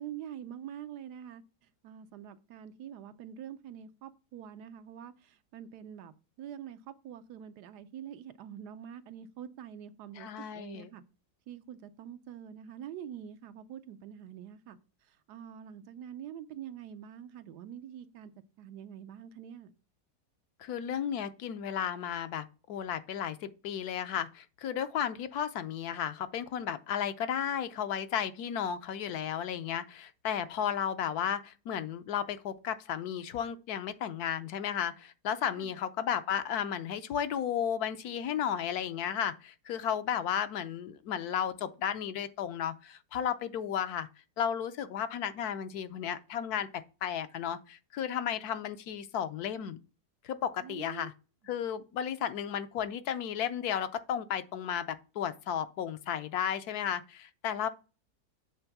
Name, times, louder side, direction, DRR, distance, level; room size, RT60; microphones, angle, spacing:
voice 1, 0.0-1.4 1.8-10.3 10.5-11.0 11.5-14.8 15.1-18.3 18.6-19.7 35.6-35.8 50.6-51.1, right 9 dB, 85° right, 1.3 m, -45 dB
voice 2, 10.2-10.9 20.6-44.1 44.4-49.8 50.2-51.1 51.5-57.7, left 9 dB, 75° left, 1.2 m, -34 dB
8.0 x 3.5 x 5.9 m
omnidirectional pair, 1.7 m